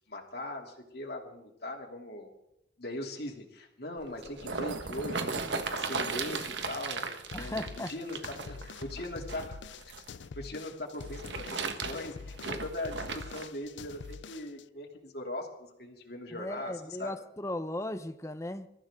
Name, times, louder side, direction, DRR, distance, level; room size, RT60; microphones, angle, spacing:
voice 1, 0.1-2.3 2.8-5.3 5.7-7.1 7.3-9.6 10.3-17.1, left 1 dB, 55° left, 3.1 m, -40 dB
sound 1, 4.0-10.1 10.9-13.5 14.1-14.2, right 4 dB, 75° right, 1.5 m, -36 dB
sound 2, 7.3-14.6, left 4 dB, 80° left, 0.5 m, -45 dB
voice 2, 7.3-7.9 12.5-12.6 16.3-18.7, left 1 dB, 15° left, 0.8 m, -37 dB
27.0 x 14.5 x 3.8 m
head